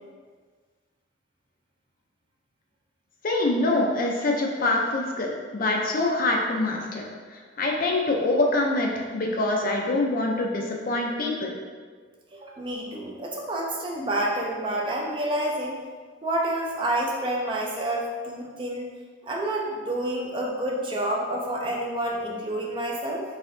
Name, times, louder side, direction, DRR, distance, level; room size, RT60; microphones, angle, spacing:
voice 1, 3.2-11.5, left 2 dB, 45° left, 0 dB, 0.5 m, -25 dB
voice 2, 12.3-15.8 16.2-18.9 19.2-23.2, right 1 dB, 25° right, -2 dB, 0.5 m, -28 dB
4.1 x 3.6 x 2.6 m, 1.6 s
head